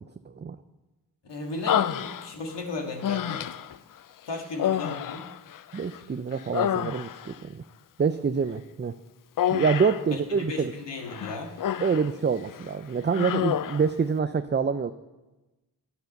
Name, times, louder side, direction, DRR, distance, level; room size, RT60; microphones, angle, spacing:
voice 1, 1.2-3.5 4.2-5.3 10.1-11.5, left 3 dB, 75° left, 2 dB, 1.8 m, -35 dB
Human voice, 1.7-2.6 3.0-3.8 4.5-6.0 6.3-7.4 9.4-10.1 11.1-12.1 12.5-12.7 13.1-13.9, left 10 dB, 50° left, 0.4 m, -28 dB
voice 2, 5.7-7.6 8.0-8.9 9.5-10.7 11.8-14.9, right 5 dB, 25° right, 9 dB, 0.5 m, -26 dB
9.3 x 8.1 x 6.6 m, 1.1 s
cardioid pair, 45°, 42 cm